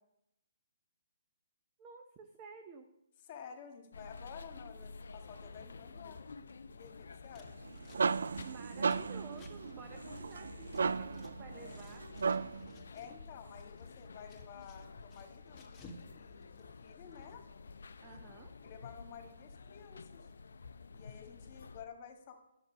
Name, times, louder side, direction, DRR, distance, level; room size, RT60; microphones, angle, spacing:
voice 1, 1.8-2.9 8.4-12.1 18.0-18.5, right 5 dB, 30° right, 5 dB, 0.8 m, -52 dB
voice 2, 3.2-6.2 6.7-7.7 12.9-17.4 18.0-18.2 18.6-20.3 20.9-22.4, left 7 dB, 35° left, 5 dB, 1.7 m, -52 dB
sound 1, 3.9-21.8, left 4 dB, 70° left, 0.5 m, -51 dB
Scissors, 7.2-11.3 11.6-13.2 13.5-16.1 16.3-17.2, left 2 dB, 15° left, 1.6 m, -58 dB
sound 2, 7.5-12.7, right 5 dB, 70° right, 0.3 m, -35 dB
10.5 x 7.2 x 5.3 m, 0.86 s
figure-of-eight pair, 140°, 0 cm